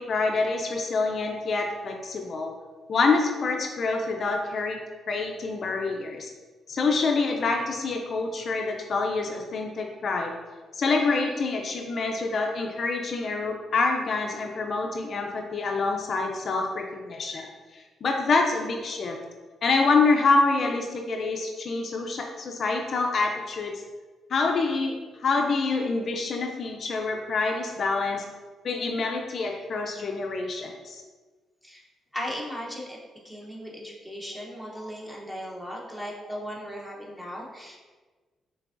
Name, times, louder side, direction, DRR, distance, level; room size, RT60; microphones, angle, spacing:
voice 1, 0.0-2.5 2.9-4.8 5.1-6.3 6.7-10.3 10.7-17.5 17.7-19.2 19.6-23.7 24.3-24.9 25.2-28.2 28.6-31.0 34.7-34.9 36.2-36.3, left 3 dB, 45° left, 2 dB, 0.4 m, -26 dB
voice 2, 32.1-33.0 33.2-37.8, equal, 5° right, -2 dB, 0.7 m, -37 dB
5.9 x 3.2 x 2.5 m, 1.3 s
cardioid pair, 160°, 0 cm